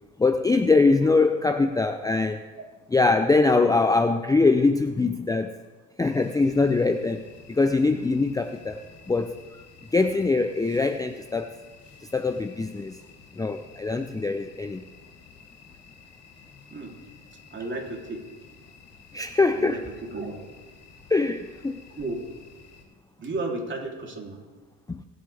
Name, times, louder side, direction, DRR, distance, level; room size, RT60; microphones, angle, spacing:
voice 1, 0.2-2.4 2.9-5.5 6.0-8.8 9.1-9.3 9.9-11.5 12.1-13.0 13.4-14.8 19.1-19.9 21.1-21.8 24.9-25.0, left 3 dB, 10° left, 8 dB, 0.5 m, -22 dB
crickets night south america and distant interior voices, 6.0-22.8, left 5 dB, 45° left, 3.4 m, -52 dB
voice 2, 17.5-18.2 19.5-19.8 20.1-20.4 22.0-22.2 23.2-24.4, right 2 dB, 35° right, 0 dB, 3.3 m, -33 dB
23.0 x 8.5 x 3.5 m, 1.3 s
supercardioid pair, 85°, 35 cm